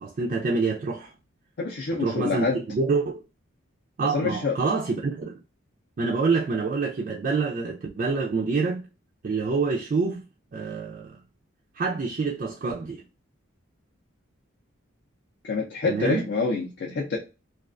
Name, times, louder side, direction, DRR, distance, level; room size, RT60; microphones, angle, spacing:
voice 1, 0.0-1.1 2.0-3.2 4.0-5.4 6.0-8.8 9.2-10.2 10.5-11.2 11.8-13.0 15.9-16.2, right 4 dB, 40° right, 0.3 m, -26 dB
voice 2, 1.6-2.6 4.1-4.6 15.4-17.2, left 4 dB, 55° left, 0.4 m, -26 dB
2.3 x 2.2 x 2.4 m
head